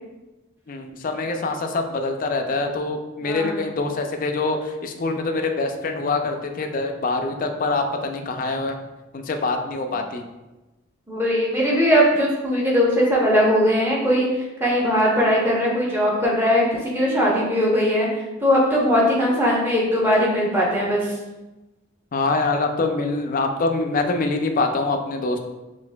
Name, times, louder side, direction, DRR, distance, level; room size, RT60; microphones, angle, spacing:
voice 1, 0.7-8.8 9.1-10.2 22.1-25.5, left 3 dB, 40° left, 5 dB, 0.3 m, -24 dB
voice 2, 3.2-3.6 11.1-18.1 18.4-21.1, equal, 10° right, -4 dB, 0.8 m, -20 dB
5.8 x 2.5 x 2.2 m, 1.1 s
head